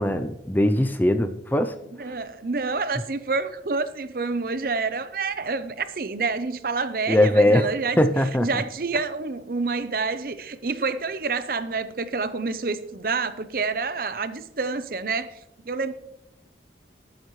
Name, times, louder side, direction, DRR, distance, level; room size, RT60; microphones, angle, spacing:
voice 1, 0.0-1.7 2.1-2.2 7.1-8.6, left 1 dB, 10° left, 0.5 m, -21 dB
voice 2, 2.0-8.0 8.4-15.3 15.7-15.9, right 4 dB, 55° right, 0.7 m, -28 dB
20.0 x 8.2 x 3.2 m
head